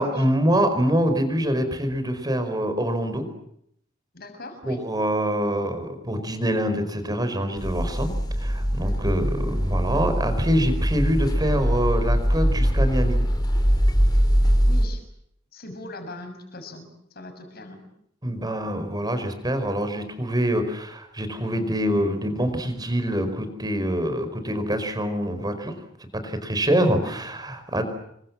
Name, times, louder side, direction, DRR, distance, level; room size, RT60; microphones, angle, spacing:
voice 1, 0.0-3.3 4.6-8.1 8.4-13.2 18.2-25.7 26.1-27.8, equal, 20° right, 9 dB, 4.9 m, -25 dB
voice 2, 4.1-4.8 8.8-9.0 14.4-15.0 15.5-17.8 20.5-20.6 26.9-27.2, left 2 dB, 50° left, 7 dB, 6.5 m, -41 dB
sound 1, 7.6-14.9, equal, 20° left, 4.1 m, -22 dB
28.5 x 24.0 x 7.5 m, 0.72 s
head